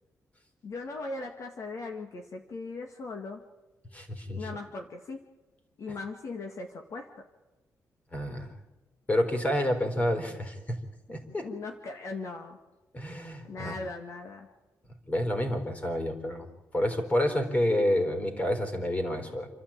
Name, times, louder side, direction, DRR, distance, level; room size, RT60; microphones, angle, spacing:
voice 1, 0.6-3.4 4.4-5.3 5.8-7.2 11.4-12.6 13.4-14.5, left 3 dB, 55° left, 4 dB, 2.0 m, -39 dB
voice 2, 3.9-4.5 8.1-8.5 9.1-10.8 11.1-11.5 12.9-13.7 15.1-16.5 16.7-19.5, left 1 dB, 25° left, 6 dB, 4.1 m, -29 dB
28.0 x 13.0 x 8.8 m, 1.2 s
wide cardioid pair, 135°, 6 cm